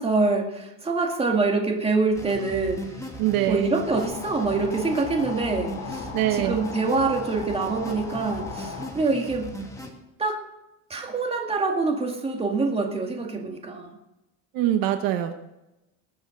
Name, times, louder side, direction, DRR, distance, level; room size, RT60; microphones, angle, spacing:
voice 1, 0.0-2.8 3.5-9.5 10.2-10.4 10.9-14.0, right 3 dB, 15° right, 2 dB, 2.1 m, -25 dB
sound 1, 2.1-9.9, equal, 10° left, 1.9 m, -38 dB
voice 2, 3.2-3.7 6.1-6.6 14.5-15.4, right 12 dB, 70° right, 8 dB, 1.1 m, -23 dB
sound 2, 3.9-8.9, left 6 dB, 80° left, 2.7 m, -37 dB
20.0 x 7.1 x 5.2 m, 0.94 s
cardioid pair, 145°, 36 cm